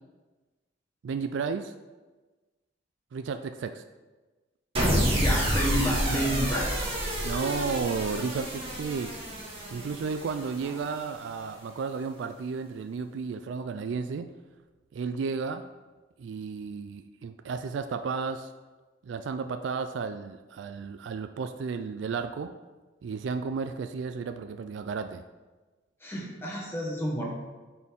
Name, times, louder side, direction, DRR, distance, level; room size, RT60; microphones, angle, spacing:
voice 1, 1.0-1.7 3.1-3.8 7.2-9.2 9.7-14.3 14.9-15.7 16.2-18.5 19.0-22.5 23.0-25.2, right 5 dB, 65° right, 9 dB, 0.3 m, -33 dB
sound 1, 4.8-11.1, equal, 30° right, 1.6 m, -29 dB
voice 2, 5.2-6.8 10.6-10.7 26.0-27.3, equal, 10° left, -4 dB, 1.5 m, -30 dB
8.9 x 4.2 x 3.6 m, 1.2 s
head